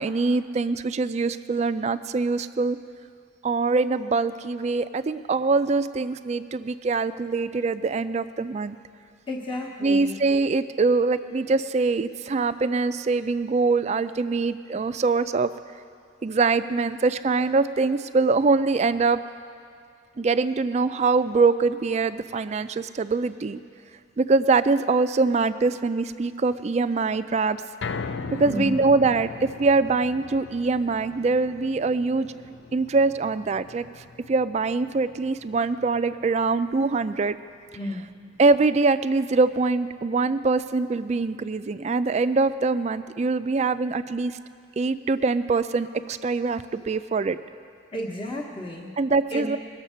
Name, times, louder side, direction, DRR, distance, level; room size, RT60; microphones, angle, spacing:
voice 1, 0.0-2.8 3.4-8.8 9.8-15.5 16.2-19.2 20.2-23.6 24.2-27.6 28.4-32.3 32.7-33.8 34.3-37.4 38.4-44.4 44.8-47.4 49.0-49.6, right 3 dB, 35° right, 13 dB, 0.3 m, -23 dB
voice 2, 9.3-10.2 28.4-28.7 37.7-38.0 47.9-48.9 49.3-49.5, left 1 dB, 25° left, -4 dB, 1.0 m, -32 dB
sound 1, 27.8-40.1 40.5-40.6 41.0-41.1, left 4 dB, 70° left, 0.5 m, -40 dB
20.5 x 7.3 x 5.6 m, 2.3 s
head